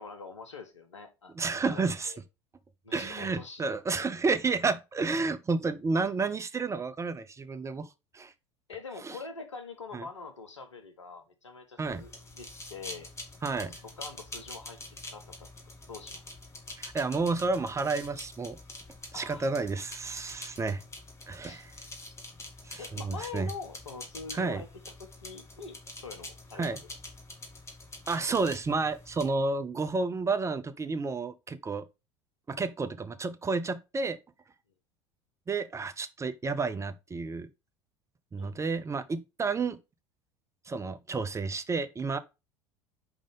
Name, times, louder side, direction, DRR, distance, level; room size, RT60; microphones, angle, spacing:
voice 1, 0.0-2.2 2.8-4.0 8.7-13.1 13.6-14.8 15.1-15.5 15.9-16.2 19.1-19.5 21.4-21.7 22.8-26.7 38.4-38.6, left 4 dB, 80° left, 1.1 m, -44 dB
voice 2, 1.3-2.1 2.9-7.9 8.1-8.3 9.0-9.2 9.9-10.0 11.8-12.0 13.4-13.7 16.8-18.6 19.1-20.8 21.3-21.7 22.6-23.5 24.3-24.6 26.6-26.8 28.1-31.8 32.5-34.2 35.5-37.5 38.3-39.8 40.7-42.2, right 4 dB, 20° right, 0.7 m, -31 dB
sound 1, 11.8-29.3, left 2 dB, 20° left, 1.8 m, -46 dB
5.1 x 3.6 x 5.3 m
figure-of-eight pair, 75°, 15 cm